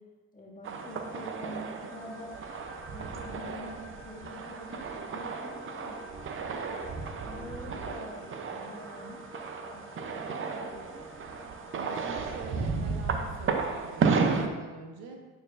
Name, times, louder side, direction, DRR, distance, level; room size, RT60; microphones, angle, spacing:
voice 1, 0.3-2.4 2.9-6.0 6.5-9.2 9.6-11.0, equal, 25° left, -2 dB, 1.5 m, -46 dB
sound 1, 0.6-14.5, right 5 dB, 40° right, 0.6 m, -33 dB
sound 2, 0.8-12.3, left 1 dB, 5° left, 0.6 m, -50 dB
voice 2, 11.7-15.2, right 3 dB, 90° right, 2 dB, 1.1 m, -45 dB
8.7 x 4.6 x 2.5 m, 1.3 s
supercardioid pair, 90°, 34 cm